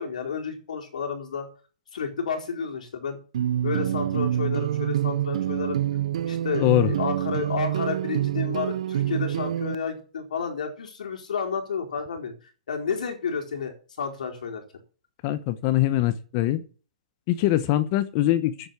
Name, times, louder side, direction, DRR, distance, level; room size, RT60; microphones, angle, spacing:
voice 1, 0.0-1.5 1.9-3.2 3.6-5.8 6.2-12.3 12.7-14.6, left 6 dB, 75° left, 3 dB, 4.6 m, -31 dB
sound 1, 3.3-9.7, right 11 dB, 55° right, 0.5 m, -26 dB
voice 2, 6.6-6.9 15.2-16.6 17.3-18.7, left 14 dB, 30° left, 15 dB, 0.9 m, -23 dB
10.5 x 8.4 x 8.3 m, 0.38 s
hypercardioid pair, 170°, 4 cm